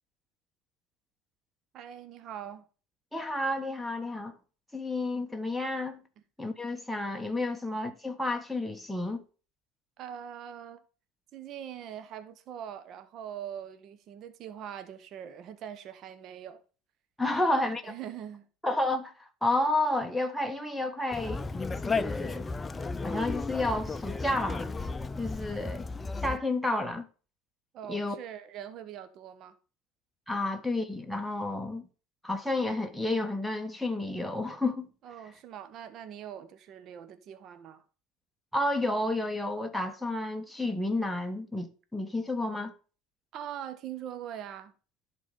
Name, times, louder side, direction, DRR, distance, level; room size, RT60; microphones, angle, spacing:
voice 1, 1.7-2.6 10.0-10.8 11.3-16.6 17.8-18.5 27.7-29.6 35.0-37.8 43.3-44.7, right 9 dB, 50° right, 1.0 m, -42 dB
voice 2, 3.1-4.3 4.7-6.0 6.4-9.2 17.2-17.9 18.6-21.4 21.7-22.5 23.0-24.7 25.2-25.9 26.2-27.1 27.9-28.2 30.3-31.9 32.2-34.9 38.5-42.7, left 2 dB, ahead, 1.2 m, -31 dB
Conversation, 21.1-26.4, left 3 dB, 20° left, 0.6 m, -34 dB
11.0 x 4.0 x 5.3 m
hypercardioid pair, 85°, 0 cm